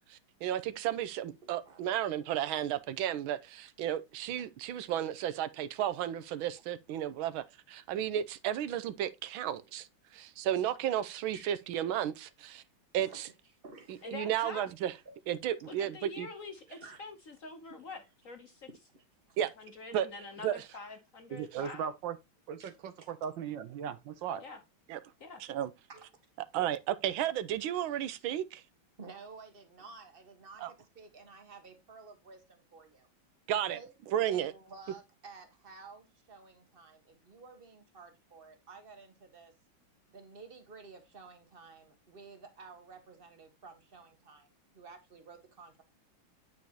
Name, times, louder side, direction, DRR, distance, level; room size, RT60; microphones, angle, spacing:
voice 1, 0.1-9.9 10.1-12.6 12.9-13.3 14.1-14.9 15.3-16.3 19.4-19.5 19.9-20.1 20.4-20.6 24.9-25.0 25.4-25.7 26.5-28.6 30.6-30.7 33.5-33.8 34.1-34.5, right 11 dB, 90° right, 1.5 m, -33 dB
voice 2, 1.4-1.8 11.3-11.8 13.0-13.3 13.6-14.1 15.0-15.2 16.7-17.0 18.9-19.4 22.6-22.7 23.0-23.1 25.9-26.1 29.0-33.1 33.7-33.9 34.2-39.5 40.1-45.8, right 4 dB, 30° right, 1.3 m, -52 dB
voice 3, 14.0-14.7 15.6-18.7 19.6-21.9 24.4-24.6 25.2-25.4, left 3 dB, 50° left, 1.1 m, -46 dB
voice 4, 21.3-22.2 22.5-24.4, right 8 dB, 70° right, 1.3 m, -38 dB
9.1 x 5.2 x 2.9 m
omnidirectional pair, 2.2 m